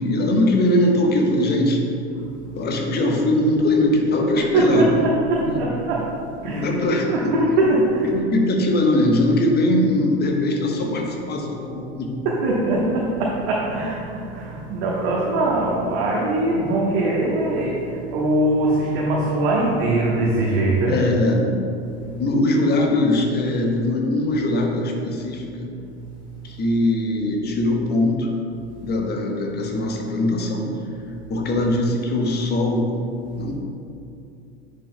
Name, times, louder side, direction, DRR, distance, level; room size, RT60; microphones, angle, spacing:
voice 1, 0.0-1.8 2.5-4.9 5.5-5.6 6.4-7.4 8.1-12.2 20.9-21.5 22.2-25.7 26.4-28.3 28.8-30.7 31.3-32.9 33.4-33.5, left 1 dB, 30° left, 1 dB, 1.1 m, -21 dB
voice 2, 4.3-6.1 6.4-6.8 7.0-8.1 12.2-21.0, right 2 dB, 55° right, -5 dB, 1.2 m, -21 dB
9.8 x 6.7 x 2.2 m, 2.6 s
figure-of-eight pair, 75°, 32 cm